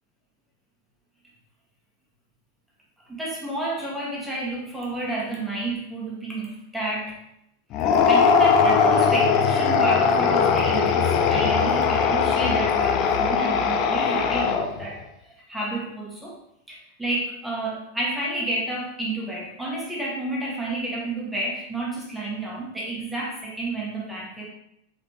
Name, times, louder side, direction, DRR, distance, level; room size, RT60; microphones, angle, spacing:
voice 1, 3.1-7.2 8.1-16.4 16.7-24.5, right 2 dB, 5° right, -5 dB, 1.5 m, -30 dB
sound 1, 7.7-14.9, left 6 dB, 40° left, 0.4 m, -20 dB
4.1 x 4.0 x 3.2 m, 0.77 s
figure-of-eight pair, 90°, 0 cm